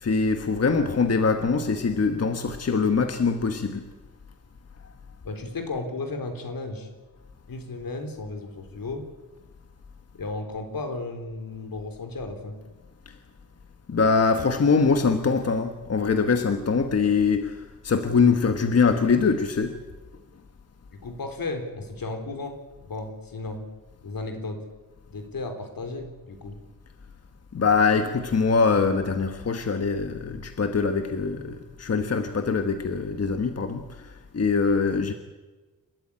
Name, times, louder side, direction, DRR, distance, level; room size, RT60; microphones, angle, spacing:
voice 1, 0.0-3.9 13.1-13.2 13.9-19.8 27.5-35.1, left 5 dB, 45° left, 1.3 m, -23 dB
voice 2, 5.2-6.9 7.5-9.1 10.1-12.6 20.9-23.7 24.0-24.6 25.1-26.6, left 3 dB, 75° left, 3.7 m, -34 dB
28.5 x 13.0 x 9.9 m
wide cardioid pair, 155°, 35 cm